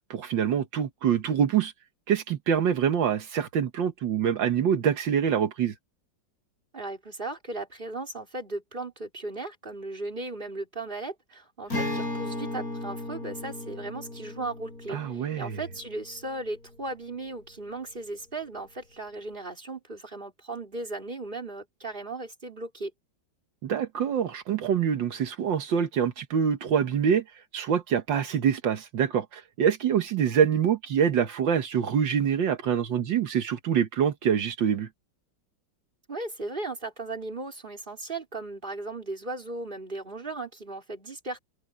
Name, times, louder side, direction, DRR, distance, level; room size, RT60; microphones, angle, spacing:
voice 1, 0.1-1.7 2.1-5.7 14.9-15.6 23.6-34.9, right 8 dB, 80° right, 1.9 m, -25 dB
voice 2, 6.7-22.9 36.1-41.4, right 2 dB, 25° right, 4.3 m, -36 dB
Acoustic guitar, 11.7-17.2, left 2 dB, 50° left, 8.4 m, -36 dB
omnidirectional pair, 2.0 m